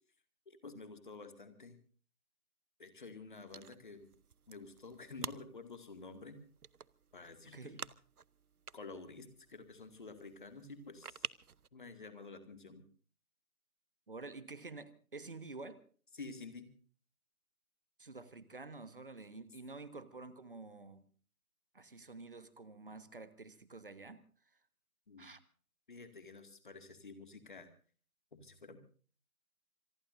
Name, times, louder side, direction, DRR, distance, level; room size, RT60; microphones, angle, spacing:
voice 1, 0.5-1.8 2.8-4.1 4.5-6.4 7.1-7.8 8.7-11.3 11.7-12.9 16.1-16.7 25.1-25.3 25.9-27.7 28.3-28.8, left 3 dB, 30° left, 2.1 m, -50 dB
sound 1, 3.5-11.7, right 6 dB, 75° right, 0.8 m, -50 dB
voice 2, 14.1-15.8 18.0-21.0 21.7-24.2 25.2-25.4, right 3 dB, 35° right, 1.2 m, -49 dB
26.5 x 20.0 x 2.6 m
figure-of-eight pair, 160°, 45 cm